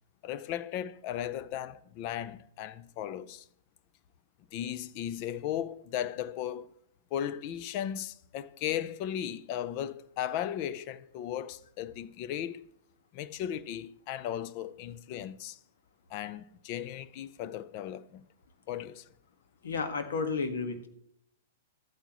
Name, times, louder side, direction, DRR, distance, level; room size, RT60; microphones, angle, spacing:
voice 1, 0.2-3.4 4.5-6.7 7.1-12.6 13.1-15.6 16.1-18.2 18.7-19.0, left 10 dB, 45° left, 0.6 m, -36 dB
voice 2, 19.6-20.9, left 4 dB, 75° left, 1.6 m, -32 dB
13.0 x 9.0 x 3.1 m
hypercardioid pair, 125°, 0 cm